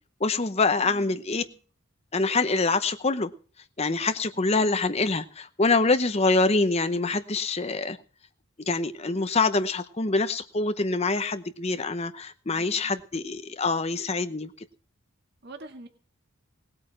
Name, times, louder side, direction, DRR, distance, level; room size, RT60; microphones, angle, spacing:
voice 1, 0.2-1.4 2.1-3.3 3.8-8.0 8.7-14.5, left 3 dB, 30° left, 0.8 m, -25 dB
voice 2, 0.8-1.6 12.5-13.0 15.4-15.9, right 2 dB, 50° right, 1.9 m, -46 dB
19.0 x 8.8 x 6.0 m
head